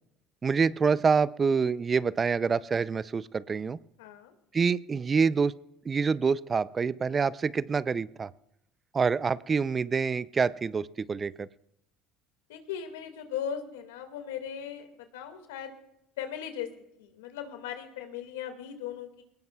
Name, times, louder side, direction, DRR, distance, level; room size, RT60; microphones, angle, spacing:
voice 1, 0.4-3.8 4.5-5.5 5.9-8.3 8.9-11.5, right 5 dB, 30° right, 18 dB, 0.5 m, -26 dB
voice 2, 4.0-4.3 12.5-14.9 15.1-15.7 16.2-16.7 17.0-19.2, left 9 dB, 90° left, 7 dB, 2.1 m, -38 dB
21.5 x 18.5 x 2.4 m, 0.79 s
supercardioid pair, 80°, 0 cm